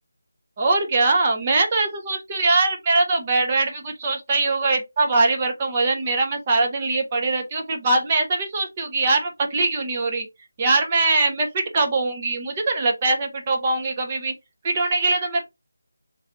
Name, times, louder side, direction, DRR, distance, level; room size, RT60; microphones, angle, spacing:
voice 1, 0.6-10.3 10.6-14.3 14.6-15.4, right 3 dB, 15° right, 0.5 m, -22 dB
3.8 x 3.2 x 2.8 m
figure-of-eight pair, 180°, 0 cm